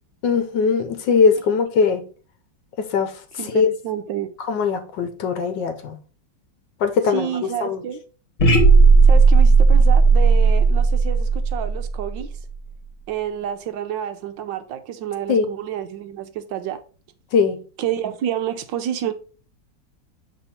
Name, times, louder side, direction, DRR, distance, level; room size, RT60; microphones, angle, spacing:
voice 1, 0.2-2.0 2.8-3.1 3.5-3.7 4.5-6.0 6.8-7.8 15.3-15.4 17.3-17.6, left 5 dB, 70° left, 1.4 m, -20 dB
voice 2, 3.4-4.3 7.1-8.0 9.0-12.3 13.1-16.8 17.8-19.1, right 10 dB, 80° right, 1.3 m, -29 dB
sound 1, 8.4-12.5, right 4 dB, 45° left, 1.5 m, -14 dB
7.2 x 3.5 x 4.2 m
omnidirectional pair, 2.1 m